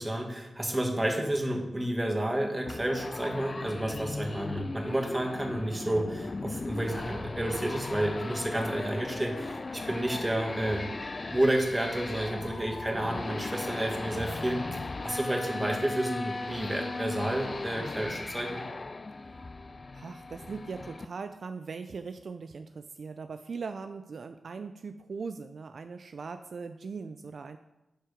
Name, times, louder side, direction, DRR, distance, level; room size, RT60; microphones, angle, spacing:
voice 1, 0.0-10.9 11.3-18.7, right 1 dB, 20° right, 2 dB, 1.8 m, -30 dB
sound 1, 2.7-21.0, left 3 dB, 40° left, 0.4 m, -37 dB
voice 2, 19.9-27.6, right 5 dB, 65° right, 8 dB, 0.4 m, -40 dB
11.0 x 4.6 x 5.0 m, 0.95 s
cardioid pair, 60°, 0 cm